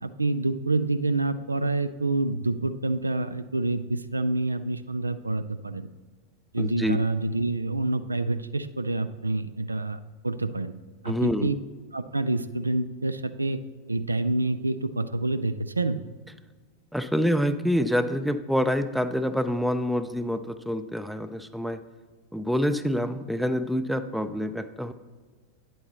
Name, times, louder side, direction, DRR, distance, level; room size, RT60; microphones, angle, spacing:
voice 1, 0.0-5.9 6.5-10.7 11.0-11.5 11.9-13.6 13.9-16.0, right 2 dB, 80° right, 13 dB, 0.3 m, -27 dB
voice 2, 6.6-7.0 11.1-11.5 16.9-21.8 22.3-24.9, equal, ahead, 11 dB, 0.4 m, -26 dB
9.5 x 7.9 x 3.0 m, 1.4 s
figure-of-eight pair, 90°, 0 cm